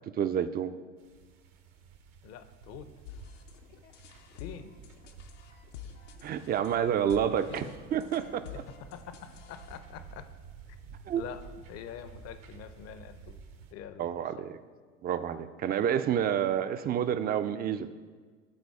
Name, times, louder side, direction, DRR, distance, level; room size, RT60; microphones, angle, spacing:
voice 1, 0.2-0.7 6.2-8.4 11.1-11.2 14.0-14.5 15.0-17.9, right 9 dB, 25° right, 11 dB, 0.4 m, -29 dB
sound 1, 1.0-13.7, right 5 dB, 70° right, 1.0 m, -52 dB
voice 2, 2.2-2.9 4.4-4.8 7.5-7.7 8.7-10.3 11.1-11.4 11.7-13.4 13.7-14.5, left 9 dB, 40° left, 11 dB, 0.7 m, -45 dB
sound 2, 3.0-9.8, left 8 dB, 70° left, 0.8 m, -49 dB
11.0 x 4.0 x 4.7 m, 1.5 s
figure-of-eight pair, 70°, 38 cm